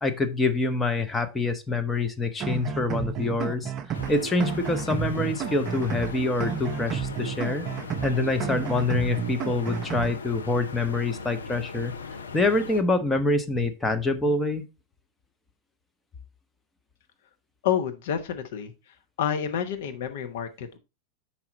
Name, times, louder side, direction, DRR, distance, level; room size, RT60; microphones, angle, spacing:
voice 1, 0.0-3.7 4.1-7.7 8.0-11.9 12.3-14.6, left 2 dB, 10° left, 8 dB, 0.7 m, -26 dB
sound 1, 2.4-10.1, right 7 dB, 30° right, 0.5 m, -31 dB
sound 2, 3.9-12.8, left 5 dB, 70° left, 0.6 m, -39 dB
voice 2, 17.6-18.7 19.2-20.8, left 8 dB, 55° left, 6 dB, 0.9 m, -28 dB
5.8 x 4.7 x 3.9 m, 0.27 s
figure-of-eight pair, 90°, 0 cm